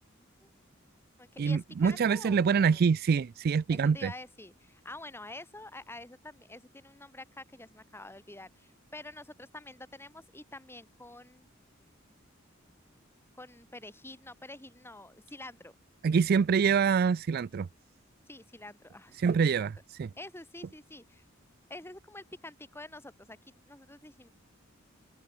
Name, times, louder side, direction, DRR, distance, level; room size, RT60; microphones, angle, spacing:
voice 1, 0.1-0.5 1.2-2.8 3.7-11.5 11.8-11.9 13.3-15.7 18.3-19.2 19.6-19.7 20.2-21.2 21.7-24.3, left 2 dB, 10° left, 3.6 m, -47 dB
voice 2, 1.4-4.1 16.0-17.7 19.2-20.1, right 6 dB, 50° right, 0.3 m, -25 dB
open air
head